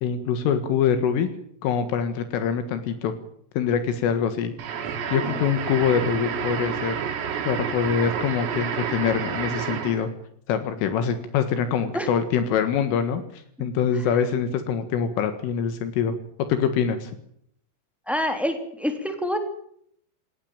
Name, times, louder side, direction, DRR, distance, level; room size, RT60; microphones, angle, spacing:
voice 1, 0.0-1.3 1.6-3.1 3.6-4.5 5.1-7.0 7.5-10.1 10.5-16.1 16.5-17.1, left 7 dB, 80° left, 10 dB, 4.2 m, -24 dB
sound 1, 4.6-10.1, right 7 dB, 90° right, 5.4 m, -29 dB
voice 2, 18.1-19.4, equal, ahead, 6 dB, 1.8 m, -26 dB
19.0 x 18.5 x 8.8 m, 0.67 s
omnidirectional pair, 5.8 m